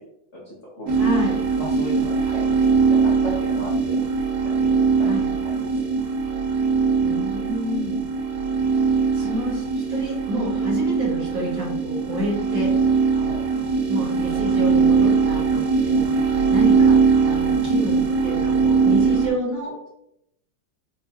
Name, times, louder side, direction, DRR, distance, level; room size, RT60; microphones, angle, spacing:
voice 1, 0.3-1.1 1.6-4.0 4.6-5.1 5.4-5.7 13.1-13.4, equal, 70° left, -6 dB, 0.6 m, -36 dB
voice 2, 0.9-1.4 5.0-5.2 7.0-8.0 8.7-12.7 13.9-16.1 16.5-19.9, equal, 60° right, -4 dB, 1.0 m, -29 dB
sound 1, 0.9-19.3, right 5 dB, 85° right, 1.5 m, -21 dB
4.4 x 2.1 x 2.7 m, 0.79 s
omnidirectional pair, 2.3 m